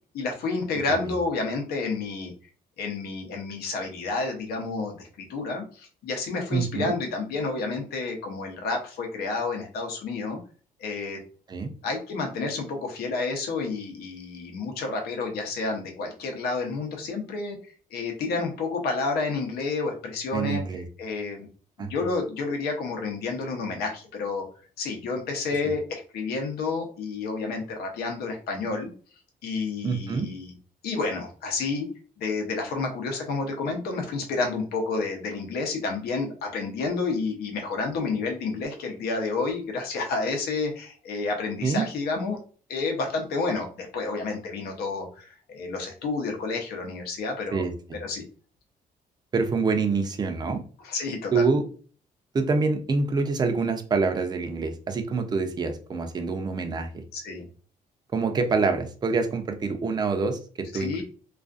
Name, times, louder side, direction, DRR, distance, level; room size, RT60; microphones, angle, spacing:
voice 1, 0.1-2.3 2.8-10.4 10.8-11.2 11.8-21.5 21.8-24.5 24.8-28.9 29.4-30.5 30.8-31.9 32.2-42.4 42.7-47.7 48.0-48.3 50.8-51.4 57.1-57.5 60.7-61.0, left 3 dB, 90° left, 3 dB, 0.7 m, -30 dB
voice 2, 6.5-6.9 11.5-11.7 20.3-20.8 21.8-21.9 29.8-30.3 41.6-41.9 47.5-48.0 49.3-50.6 51.3-51.6 52.3-57.0 58.1-61.0, right 4 dB, 25° right, 6 dB, 0.4 m, -26 dB
2.4 x 2.3 x 2.4 m, 0.40 s
cardioid pair, 130°, 16 cm